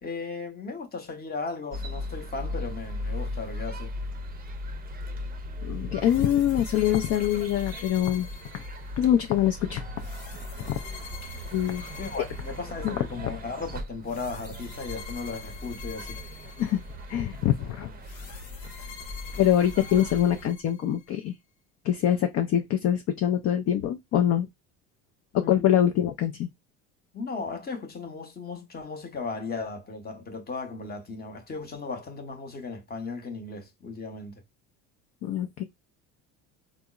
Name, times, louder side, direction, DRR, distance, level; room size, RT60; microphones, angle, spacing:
voice 1, 0.0-3.9 12.0-16.2 25.3-25.9 27.1-34.4, left 4 dB, 25° left, 0.9 m, -36 dB
sound 1, 1.7-20.5, left 1 dB, 20° right, 0.6 m, -38 dB
voice 2, 5.6-8.3 8.5-8.6 9.0-9.8 10.6-10.7 11.5-11.8 12.8-12.9 16.6-16.8 17.1-17.9 19.4-21.3 21.8-24.5 25.5-26.5 35.2-35.6, left 11 dB, 40° left, 0.5 m, -24 dB
sound 2, 6.0-9.2 10.0-13.1 14.0-17.2 18.0-21.1, left 7 dB, 75° left, 0.9 m, -45 dB
3.4 x 2.0 x 2.3 m
supercardioid pair, 80°, 41 cm